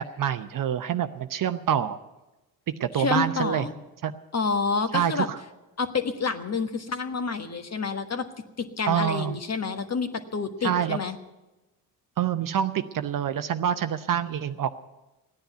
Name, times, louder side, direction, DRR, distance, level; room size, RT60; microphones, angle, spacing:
voice 1, 0.0-2.0 2.8-3.7 4.0-4.1 4.9-5.4 8.9-9.4 10.6-11.0 12.2-14.8, right 9 dB, 40° right, 10 dB, 0.8 m, -26 dB
voice 2, 3.0-3.7 4.3-5.3 5.8-11.2, left 4 dB, 30° left, 8 dB, 1.4 m, -28 dB
15.5 x 10.5 x 7.8 m, 1.1 s
hypercardioid pair, 50°, 49 cm